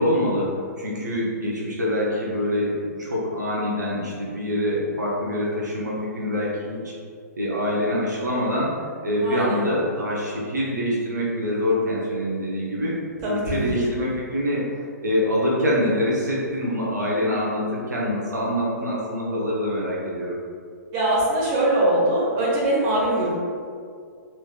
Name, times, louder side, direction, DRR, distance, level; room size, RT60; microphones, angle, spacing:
voice 1, 0.0-6.9 7.4-8.7 9.0-13.0 13.3-20.4, left 1 dB, 85° right, -6 dB, 0.8 m, -25 dB
voice 2, 9.2-9.6 13.2-13.6 20.9-23.4, right 1 dB, 35° right, -6 dB, 1.1 m, -22 dB
3.1 x 3.1 x 2.4 m, 2.2 s
figure-of-eight pair, 120°, 9 cm